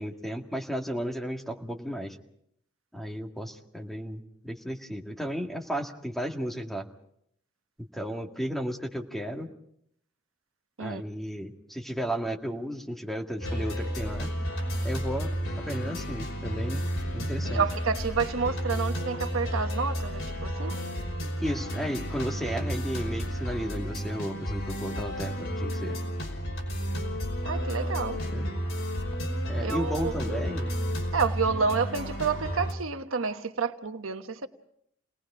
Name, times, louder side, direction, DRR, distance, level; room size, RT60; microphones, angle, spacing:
voice 1, 0.0-2.2 2.9-6.8 7.9-9.5 10.8-14.3 14.8-15.3 15.7-16.9 17.1-17.6 21.4-26.0 28.3-28.5 29.5-30.7, equal, ahead, 2 dB, 1.9 m, -34 dB
sound 1, 13.4-32.7, equal, 75° left, 5.4 m, -32 dB
voice 2, 17.4-20.8 27.4-28.2 29.6-30.1 31.1-34.5, right 5 dB, 85° right, 7 dB, 1.2 m, -29 dB
29.5 x 19.5 x 5.0 m, 0.71 s
head